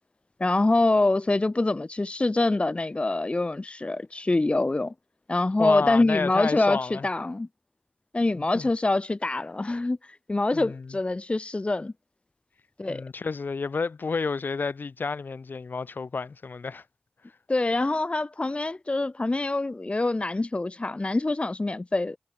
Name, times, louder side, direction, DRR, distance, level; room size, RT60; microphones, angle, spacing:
voice 1, 0.4-4.9 5.3-7.5 8.1-10.0 10.3-11.9 12.8-13.0 17.5-22.2, left 2 dB, 35° left, 0.7 m, -25 dB
voice 2, 5.6-7.1 8.3-8.7 10.5-11.0 12.9-16.8, left 4 dB, 85° left, 4.3 m, -30 dB
wide cardioid pair, 55°, 3 cm